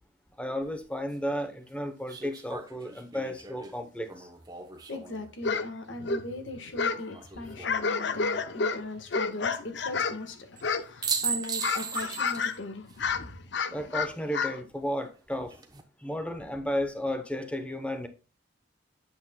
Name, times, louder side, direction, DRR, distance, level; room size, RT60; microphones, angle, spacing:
voice 1, 0.4-4.3 13.7-15.5 16.0-18.1, equal, 5° left, 0.9 m, -33 dB
sound 1, 0.6-0.7 2.1-5.3 7.1-7.8 10.6-10.7 11.0-12.6 12.9-13.0 15.3-15.8, right 5 dB, 20° right, 0.8 m, -36 dB
voice 2, 4.9-13.4, left 2 dB, 85° left, 1.4 m, -39 dB
sound 2, 5.4-5.7 5.9-7.1 7.4-10.2 10.6-11.1 11.4-12.6 12.9-14.6, left 5 dB, 65° left, 0.6 m, -30 dB
8.6 x 7.4 x 2.2 m
head